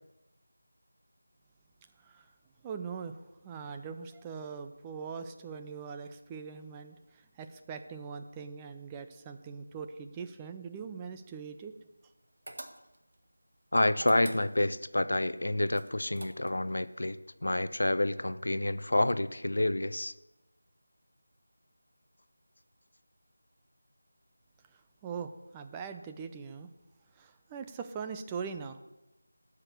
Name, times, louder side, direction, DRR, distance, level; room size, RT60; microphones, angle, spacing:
voice 1, 2.0-2.3 2.6-11.7 24.7-26.7 27.1-28.8, right 6 dB, 10° right, 7 dB, 0.5 m, -42 dB
Hanging Up Clothes, 12.5-13.1 13.9-14.8 15.7-16.7, right 2 dB, 60° right, 1.4 m, -45 dB
voice 2, 13.7-20.1, left 1 dB, 75° left, 14 dB, 0.6 m, -29 dB
11.5 x 6.0 x 6.7 m, 0.96 s
figure-of-eight pair, 170°, 0 cm